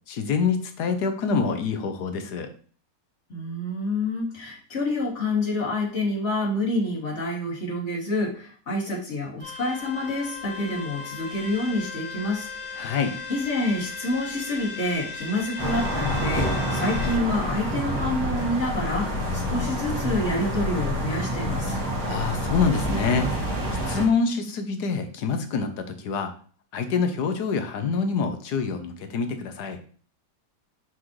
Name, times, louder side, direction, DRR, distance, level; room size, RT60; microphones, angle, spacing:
voice 1, 0.1-2.5 12.8-13.2 22.1-23.3 23.9-26.3 26.7-29.8, left 5 dB, 70° left, 7 dB, 1.4 m, -26 dB
voice 2, 3.3-13.0 13.3-21.8, left 1 dB, 40° left, -4 dB, 2.6 m, -28 dB
sound 1, 9.4-17.2, left 4 dB, 5° right, 1.5 m, -37 dB
sound 2, 15.6-24.1, equal, 55° right, 2.9 m, -27 dB
6.3 x 5.9 x 3.1 m, 0.42 s
omnidirectional pair, 1.8 m